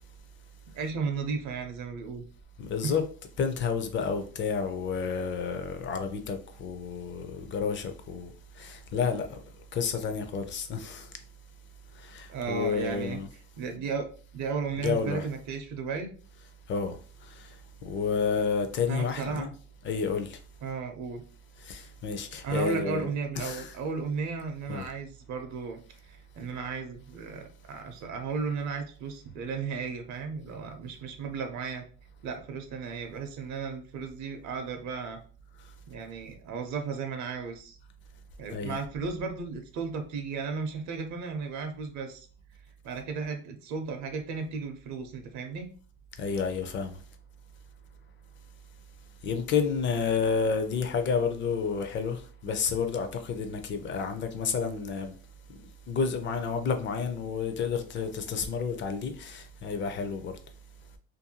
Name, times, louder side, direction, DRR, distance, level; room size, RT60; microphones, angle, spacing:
voice 1, 0.7-2.2 2.8-3.0 12.3-13.2 13.6-14.1 14.3-16.1 18.9-19.5 20.6-21.2 22.4-25.8 26.1-31.8 32.2-35.2 35.9-37.8 38.4-42.3 42.8-45.7, right 5 dB, 55° right, 0.6 m, -34 dB
voice 2, 2.6-3.0 3.4-9.4 9.7-11.1 11.9-13.3 14.8-15.3 16.7-19.5 19.8-20.4 21.6-23.1 23.4-23.8 24.7-24.9 38.5-38.8 46.2-47.0 49.2-55.2 55.9-60.4, left 5 dB, 35° left, 0.4 m, -30 dB
2.6 x 2.2 x 2.7 m
cardioid pair, 120°, 34 cm